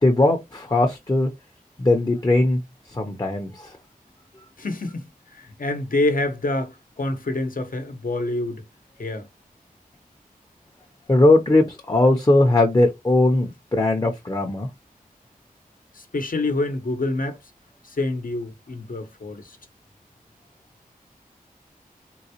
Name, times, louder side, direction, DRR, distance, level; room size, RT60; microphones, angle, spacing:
voice 1, 0.0-1.3 1.8-2.6 2.9-3.8 11.1-14.7, left 2 dB, 25° left, 0.7 m, -19 dB
voice 2, 4.6-5.1 5.3-8.6 9.0-9.3 15.9-17.4 17.9-19.6, left 2 dB, 65° left, 0.9 m, -27 dB
3.9 x 2.3 x 2.8 m
wide cardioid pair, 70°, 15 cm